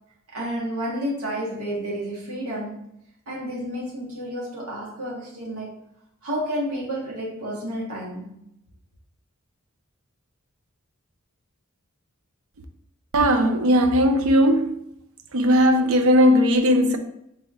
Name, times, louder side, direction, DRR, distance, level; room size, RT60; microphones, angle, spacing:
voice 1, 0.3-2.8 3.3-5.7 6.2-8.3, equal, 85° right, 1.7 m, -30 dB
voice 2, 13.1-14.8 15.3-17.0, equal, 70° right, 0.6 m, -18 dB
4.0 x 3.3 x 3.7 m
head